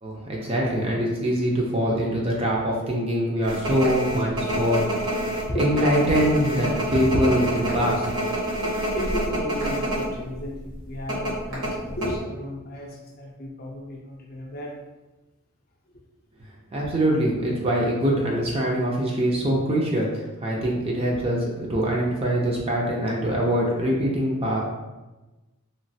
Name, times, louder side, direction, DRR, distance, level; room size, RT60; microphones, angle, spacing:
voice 1, 0.0-5.1 5.6-8.1 16.7-24.6, equal, 25° right, -2 dB, 0.4 m, -23 dB
sound 1, 3.4-10.1 10.4-10.5 11.1-12.1, right 1 dB, 65° right, 1.0 m, -27 dB
voice 2, 5.5-5.9 7.0-7.2 8.5-14.8, equal, 45° left, -1 dB, 0.5 m, -34 dB
3.1 x 2.4 x 2.7 m, 1.1 s
head